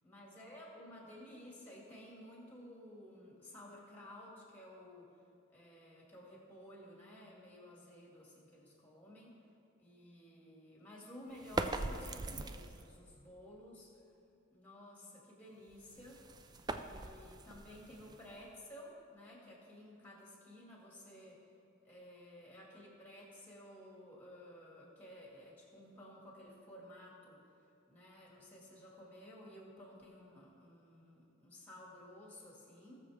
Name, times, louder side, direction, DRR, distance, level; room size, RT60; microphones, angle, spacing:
voice 1, 0.0-5.1 5.5-9.3 9.8-13.9 14.5-16.2 16.8-21.4 21.8-27.4 27.9-33.0, left 1 dB, 10° left, -4 dB, 2.3 m, -54 dB
sound 1, 11.3-13.0 15.7-18.6, right 2 dB, 20° right, 0.3 m, -42 dB
18.0 x 6.8 x 3.6 m, 2.6 s
head